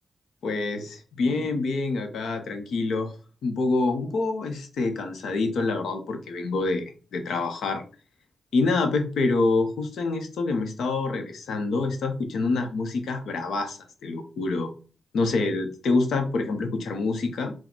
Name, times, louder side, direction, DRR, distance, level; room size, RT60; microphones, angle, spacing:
voice 1, 0.4-3.1 3.4-7.8 8.5-14.7 15.1-17.5, left 3 dB, 85° left, 6 dB, 0.8 m, -26 dB
4.1 x 2.2 x 4.4 m, 0.36 s
cardioid pair, 55°, 0 cm